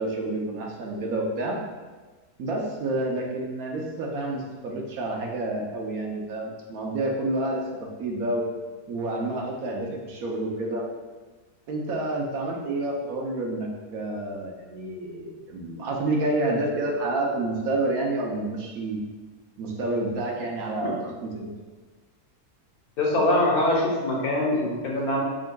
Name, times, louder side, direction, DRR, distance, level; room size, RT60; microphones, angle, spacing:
voice 1, 0.0-1.6 2.4-8.4 8.9-10.8 11.7-19.0 19.6-21.5, right 2 dB, 70° right, -1 dB, 1.1 m, -29 dB
voice 2, 23.0-25.2, left 1 dB, 70° left, -3 dB, 1.4 m, -23 dB
6.2 x 3.7 x 2.2 m, 1.3 s
omnidirectional pair, 1.7 m